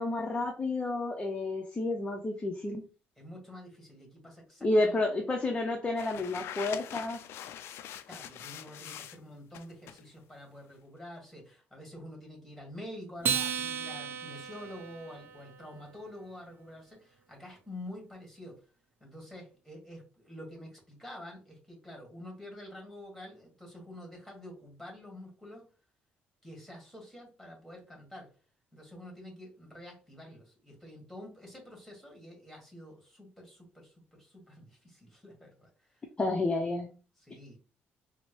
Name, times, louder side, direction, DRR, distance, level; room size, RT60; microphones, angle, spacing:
voice 1, 0.0-2.8 4.6-7.2 36.2-36.9, left 2 dB, 20° left, 2 dB, 0.6 m, -30 dB
voice 2, 3.2-5.0 8.1-18.6 19.0-25.7 26.4-28.3 28.7-36.0 37.2-37.6, left 1 dB, ahead, -1 dB, 1.7 m, -48 dB
sound 1, 6.0-9.2 9.5-10.0, left 10 dB, 70° left, 0.4 m, -43 dB
Acoustic guitar, 13.2-15.9, right 7 dB, 50° right, 0.6 m, -34 dB
4.3 x 2.0 x 3.0 m, 0.36 s
cardioid pair, 95°, 4 cm